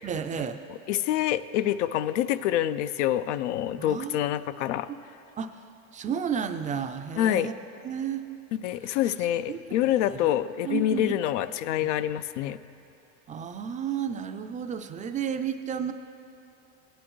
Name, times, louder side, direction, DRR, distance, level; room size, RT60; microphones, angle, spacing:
voice 1, 0.0-0.6 3.8-4.2 5.4-5.6 5.9-7.5 7.8-8.2 8.8-9.1 9.5-9.6 10.2-10.3 10.6-11.1 11.8-11.9 13.3-15.9, right 8 dB, 20° right, 8 dB, 0.4 m, -32 dB
voice 2, 0.9-4.9 7.2-7.5 8.6-12.6, left 12 dB, 85° left, 13 dB, 0.5 m, -26 dB
16.5 x 10.0 x 3.1 m, 3.0 s
supercardioid pair, 115°, 35 cm